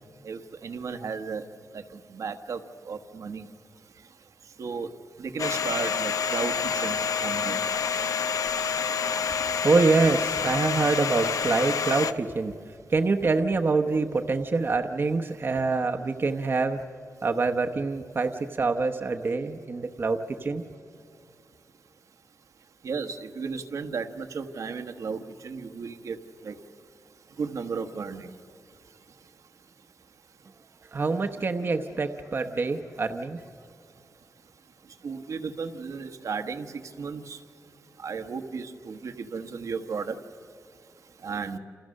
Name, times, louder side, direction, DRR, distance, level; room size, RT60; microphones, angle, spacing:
voice 1, 0.2-1.4 1.7-1.8 2.1-2.6 2.8-3.4 4.6-4.9 5.2-7.6 22.8-26.2 26.4-26.6 27.4-28.3 35.0-36.7 37.0-37.4 38.0-40.2 41.2-41.6, right 5 dB, 70° right, 7 dB, 1.3 m, -34 dB
Domestic sounds home sounds, 5.4-12.1, left 6 dB, 70° left, 0.8 m, -28 dB
voice 2, 9.6-12.6 12.9-16.8 17.2-20.6 30.9-33.4, right 3 dB, 40° right, 5 dB, 0.9 m, -25 dB
28.5 x 28.5 x 6.5 m, 2.5 s
wide cardioid pair, 145°, 6 cm